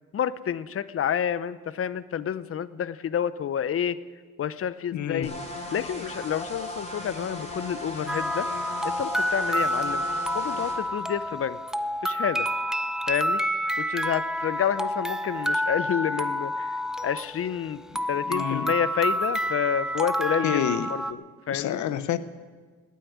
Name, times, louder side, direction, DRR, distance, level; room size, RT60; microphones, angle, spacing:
voice 1, 0.1-4.0 4.4-5.3 5.7-8.5 8.8-10.0 10.3-11.6 12.0-12.5 13.1-13.4 13.8-16.8 17.0-17.8 18.1-20.6 20.9-21.2 21.5-21.8, left 9 dB, 50° left, 16 dB, 0.7 m, -29 dB
voice 2, 4.9-5.3 17.9-18.7 20.4-20.9 21.5-22.2, left 10 dB, 70° left, 14 dB, 1.0 m, -28 dB
sound 1, 5.2-10.8, left 1 dB, 20° left, 4.7 m, -37 dB
sound 2, 8.1-21.1, equal, ahead, 0.6 m, -28 dB
17.5 x 8.5 x 9.4 m, 1.5 s
cardioid pair, 90°, 30 cm